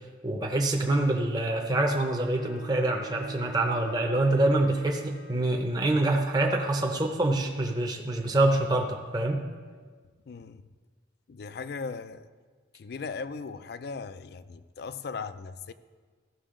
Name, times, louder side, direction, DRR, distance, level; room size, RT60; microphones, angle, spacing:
voice 1, 0.2-9.4, right 2 dB, 20° right, 1 dB, 0.7 m, -26 dB
Bowed string instrument, 1.7-5.6, right 6 dB, 75° left, 1.2 m, -47 dB
voice 2, 10.3-10.6 11.3-12.3 12.7-15.7, left 4 dB, 55° left, 13 dB, 0.4 m, -38 dB
15.0 x 6.1 x 3.7 m, 1.5 s
head